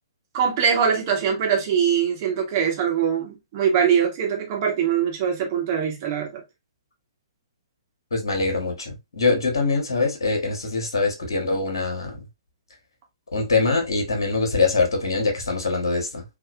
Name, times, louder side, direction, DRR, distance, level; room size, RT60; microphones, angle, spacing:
voice 1, 0.3-6.4, right 7 dB, 35° right, 1.1 m, -22 dB
voice 2, 8.1-12.2 13.3-16.2, left 3 dB, 65° left, 1.1 m, -23 dB
3.4 x 2.4 x 2.4 m
figure-of-eight pair, 120°, 3 cm